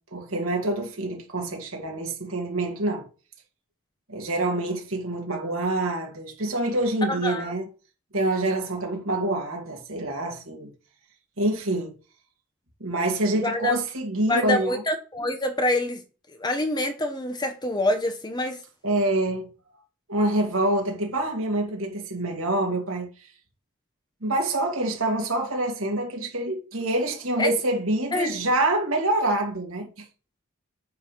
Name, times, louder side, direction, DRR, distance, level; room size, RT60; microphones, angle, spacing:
voice 1, 0.1-3.0 4.1-7.6 8.1-10.7 11.4-11.9 12.8-14.8 18.8-19.5 20.1-23.1 24.2-30.1, right 1 dB, 65° right, 2.3 m, -26 dB
voice 2, 7.1-7.5 13.4-13.8 14.3-16.0 16.4-18.6 27.4-27.5 28.1-28.3, left 1 dB, 20° left, 0.8 m, -26 dB
9.3 x 3.4 x 5.7 m
head